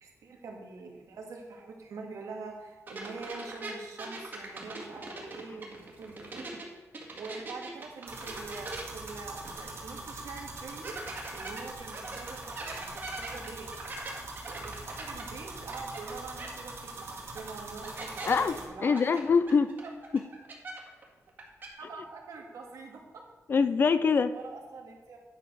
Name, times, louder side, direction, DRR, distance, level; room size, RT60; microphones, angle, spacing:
voice 1, 0.0-6.8 7.1-11.0 11.3-13.7 14.4-18.1 18.4-19.2 19.8-19.9 21.8-23.2 24.3-25.2, right 4 dB, 85° right, 1 dB, 2.0 m, -44 dB
sound 1, 2.9-6.6 6.9-9.8 10.1-10.2 10.8-16.1 16.4-16.5 17.4-17.5 17.8-18.4 18.9-21.0 21.3-21.7, right 2 dB, 40° right, 1.8 m, -41 dB
sound 2, 8.1-18.7, right 2 dB, 55° right, 2.1 m, -43 dB
voice 2, 18.2-18.6 18.8-19.8 20.1-20.2 23.5-24.3, left 5 dB, 40° left, 13 dB, 0.4 m, -24 dB
10.0 x 5.3 x 6.2 m, 1.3 s
wide cardioid pair, 175°, 5 cm